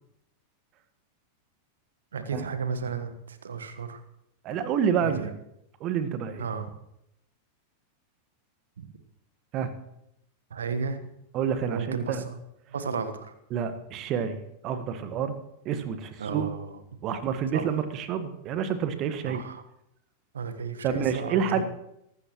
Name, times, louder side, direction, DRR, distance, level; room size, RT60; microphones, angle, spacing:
voice 1, 2.1-4.0 5.0-5.3 6.4-6.7 8.8-8.9 10.5-11.1 11.6-12.4 12.7-13.3 16.2-16.8 17.5-17.8 19.3-19.6 20.3-21.6, right 5 dB, 70° right, 10 dB, 1.4 m, -33 dB
voice 2, 4.4-5.3 5.8-6.5 9.5-9.7 11.3-12.2 13.5-14.4 14.6-15.4 15.6-16.5 17.0-19.4 20.8-21.6, right 7 dB, 35° right, 10 dB, 1.5 m, -28 dB
23.5 x 12.5 x 3.1 m, 0.79 s
figure-of-eight pair, 90°, 0 cm